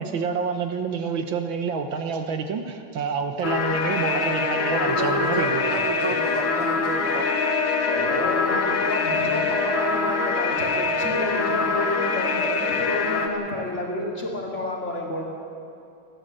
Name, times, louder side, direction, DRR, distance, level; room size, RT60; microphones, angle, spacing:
voice 1, 0.0-5.8, right 5 dB, 70° right, 6 dB, 1.8 m, -28 dB
sound 1, 3.4-13.3, left 4 dB, 70° left, 2.3 m, -24 dB
voice 2, 4.7-7.3, right 3 dB, 20° right, 1 dB, 0.8 m, -30 dB
voice 3, 7.9-15.2, left 1 dB, 35° left, -2 dB, 3.3 m, -30 dB
29.5 x 12.0 x 7.7 m, 2.6 s
omnidirectional pair, 2.3 m